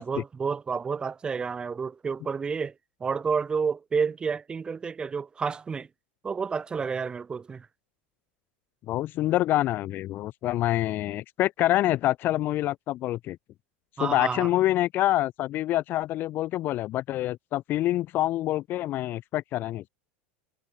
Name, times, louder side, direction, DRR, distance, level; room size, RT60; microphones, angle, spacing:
voice 1, 0.0-2.7 3.0-5.9 6.2-7.7 14.0-14.5, right 5 dB, 15° right, 5.4 m, -30 dB
voice 2, 8.9-13.4 14.0-19.8, left 15 dB, 40° left, 1.6 m, -26 dB
supercardioid pair, 145°, 5 cm